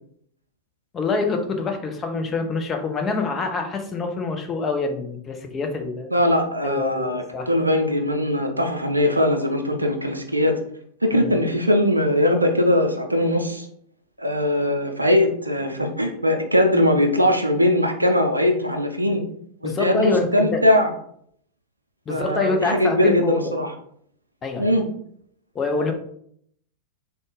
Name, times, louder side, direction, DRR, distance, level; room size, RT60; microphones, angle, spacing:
voice 1, 0.9-6.1 6.6-7.5 11.1-11.3 19.6-20.6 22.1-23.5 24.4-24.7 25.5-25.9, left 3 dB, 25° left, 4 dB, 0.7 m, -26 dB
voice 2, 6.1-10.5 11.0-13.7 14.2-19.2 19.6-20.9 22.1-23.7 24.6-24.8 25.8-25.9, left 1 dB, 85° right, 4 dB, 0.6 m, -20 dB
3.8 x 2.3 x 3.8 m, 0.66 s
figure-of-eight pair, 90°, 0 cm